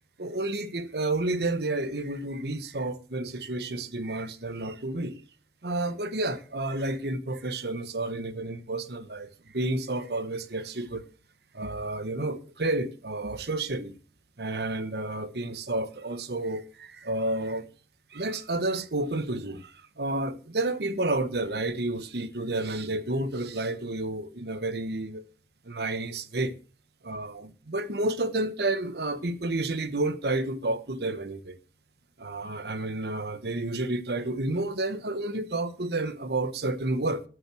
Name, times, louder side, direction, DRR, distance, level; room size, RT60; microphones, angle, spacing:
voice 1, 0.2-5.2 5.6-11.0 11.5-14.0 14.4-17.7 18.1-25.2 25.6-26.6 27.0-31.6 32.2-37.2, right 2 dB, 65° right, 1.1 m, -30 dB
13.0 x 6.4 x 6.2 m
head